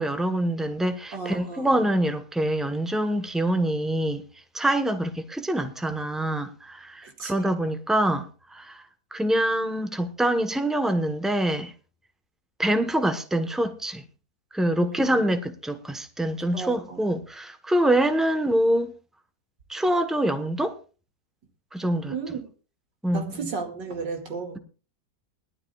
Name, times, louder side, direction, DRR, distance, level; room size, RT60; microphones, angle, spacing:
voice 1, 0.0-4.2 4.5-8.3 8.5-8.8 9.1-11.7 12.6-14.0 14.5-18.9 19.7-20.8 21.7-22.4 23.0-23.5, right 1 dB, ahead, 0.6 m, -25 dB
voice 2, 1.1-1.8 7.0-7.5 14.8-15.2 16.5-17.0 22.1-22.4 23.1-24.6, right 5 dB, 80° right, 2.8 m, -34 dB
21.0 x 12.0 x 2.3 m
omnidirectional pair, 1.9 m